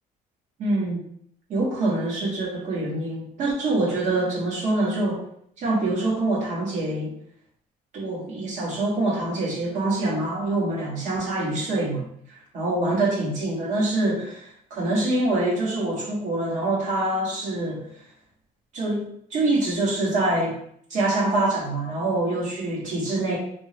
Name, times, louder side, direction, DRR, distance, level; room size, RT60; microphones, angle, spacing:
voice 1, 0.6-1.0 1.5-5.2 5.6-7.1 7.9-12.1 12.5-17.8 18.7-19.0 19.3-20.6 20.9-23.4, right 2 dB, 50° right, -3 dB, 0.9 m, -25 dB
2.8 x 2.2 x 2.9 m, 0.68 s
cardioid pair, 180°, 17 cm